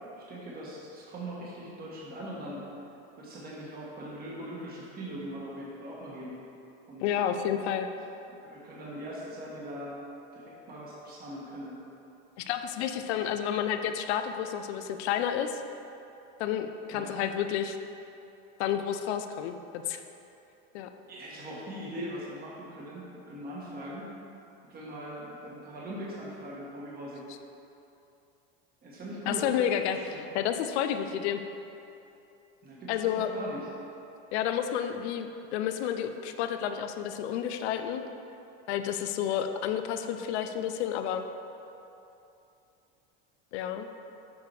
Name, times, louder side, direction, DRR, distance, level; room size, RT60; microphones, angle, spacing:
voice 1, 0.2-2.6 3.2-6.4 6.9-7.0 8.3-10.0 10.3-11.8 16.9-17.1 21.1-24.1 24.7-27.2 28.8-29.5 30.0-30.2 32.6-33.7, right 1 dB, 30° right, -5 dB, 1.4 m, -41 dB
voice 2, 7.0-7.9 12.4-15.6 16.4-17.8 18.6-20.0 20.7-20.9 29.3-31.4 32.9-33.3 34.3-38.0 38.7-41.2 43.5-43.9, left 9 dB, 85° left, 8 dB, 0.6 m, -30 dB
7.2 x 4.8 x 4.7 m, 2.8 s
supercardioid pair, 125°, 32 cm